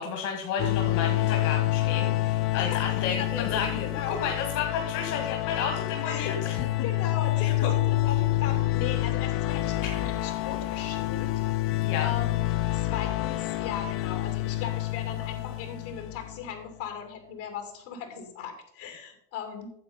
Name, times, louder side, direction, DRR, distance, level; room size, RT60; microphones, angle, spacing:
voice 1, 0.0-6.7 7.5-7.7 9.8-10.0 11.8-12.1, left 6 dB, 55° left, 2 dB, 2.2 m, -32 dB
sound 1, 0.6-16.5, left 17 dB, 35° left, 0.5 m, -28 dB
voice 2, 2.6-4.2 6.0-6.4 6.8-11.3 12.0-12.5 12.7-19.7, left 7 dB, 75° left, 4 dB, 2.9 m, -38 dB
9.4 x 7.3 x 5.4 m, 0.71 s
supercardioid pair, 105°, 38 cm